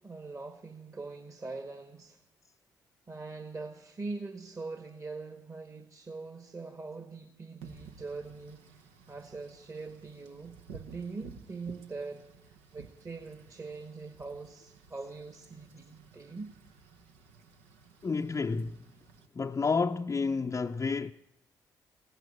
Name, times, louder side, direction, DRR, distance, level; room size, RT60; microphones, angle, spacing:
voice 1, 0.0-2.2 3.1-16.5, right 3 dB, 35° right, 1.8 m, -42 dB
Wind / Rain, 7.6-19.3, right 6 dB, 80° right, 0.9 m, -54 dB
voice 2, 18.0-18.9 19.3-21.1, left 4 dB, 30° left, 0.6 m, -30 dB
16.0 x 9.1 x 9.8 m
hypercardioid pair, 40°, 9 cm